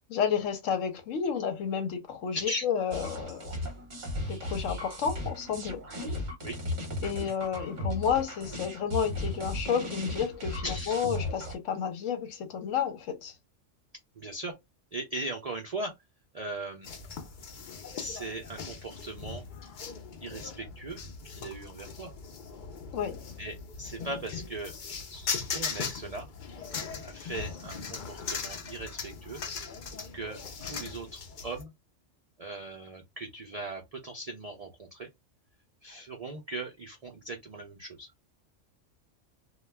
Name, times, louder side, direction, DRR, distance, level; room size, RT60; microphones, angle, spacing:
voice 1, 0.1-3.6 4.3-5.8 7.0-13.3 22.9-23.2, left 7 dB, 75° left, 1.0 m, -31 dB
sound 1, 2.9-11.5, left 1 dB, 40° right, 0.8 m, -36 dB
voice 2, 10.6-11.0 14.2-14.5 14.9-15.9 16.3-16.9 18.0-19.4 20.2-22.1 23.4-24.7 25.1-26.3 27.0-29.4 30.1-31.7 32.4-35.1 35.8-38.1, right 2 dB, 65° right, 0.3 m, -39 dB
sound 2, 16.8-31.6, left 5 dB, 55° left, 0.5 m, -39 dB
2.3 x 2.2 x 3.2 m
omnidirectional pair, 1.3 m